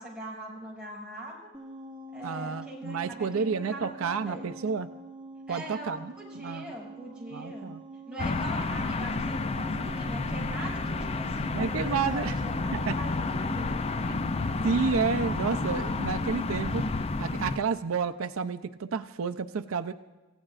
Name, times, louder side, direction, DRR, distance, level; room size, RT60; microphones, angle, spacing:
voice 1, 0.0-1.5 2.1-4.5 5.5-7.7 8.1-13.9, right 1 dB, 5° right, -5 dB, 6.1 m, -42 dB
sound 1, 1.5-16.9, right 3 dB, 25° right, 1.0 m, -45 dB
voice 2, 2.2-4.9 5.5-6.7 7.3-7.8 11.5-12.4 12.7-13.0 14.6-16.9 17.2-19.9, right 5 dB, 85° right, 9 dB, 0.5 m, -30 dB
sound 2, 8.2-17.6, left 3 dB, 30° left, 0.5 m, -30 dB
28.5 x 15.5 x 2.5 m, 1.2 s
head